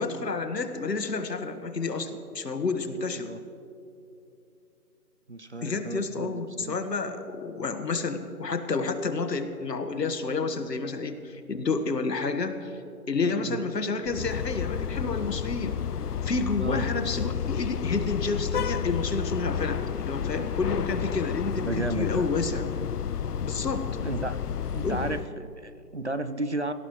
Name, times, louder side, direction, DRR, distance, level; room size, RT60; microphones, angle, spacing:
voice 1, 0.0-3.3 5.6-12.8 13.1-15.8 16.2-22.6 23.4-23.9 24.8-25.1, left 4 dB, 90° left, 7 dB, 1.6 m, -30 dB
voice 2, 3.0-3.4 5.3-6.3 6.6-6.8 13.4-13.6 16.6-16.9 21.6-22.2 24.0-24.4 24.7-26.7, right 2 dB, 45° right, 12 dB, 0.5 m, -33 dB
sound 1, 14.1-25.3, left 8 dB, 70° left, 0.6 m, -31 dB
22.0 x 17.0 x 3.1 m, 2.8 s
hypercardioid pair, 175°, 48 cm